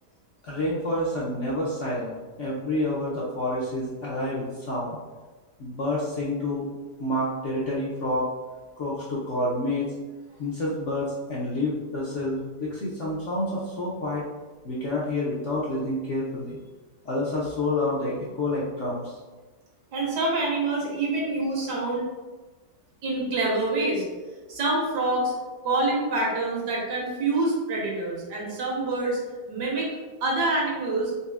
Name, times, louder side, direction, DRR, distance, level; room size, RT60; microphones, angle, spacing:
voice 1, 0.4-5.0 5.6-6.7 7.0-8.3 8.8-9.9 10.4-14.2 14.6-16.6 17.0-19.2, left 1 dB, 65° left, -6 dB, 0.7 m, -28 dB
voice 2, 19.9-22.0 23.0-24.0 24.5-25.3 25.6-29.2 29.5-29.9 30.2-31.1, right 2 dB, 75° right, -3 dB, 1.6 m, -26 dB
4.1 x 3.2 x 2.3 m, 1.3 s
omnidirectional pair, 1.9 m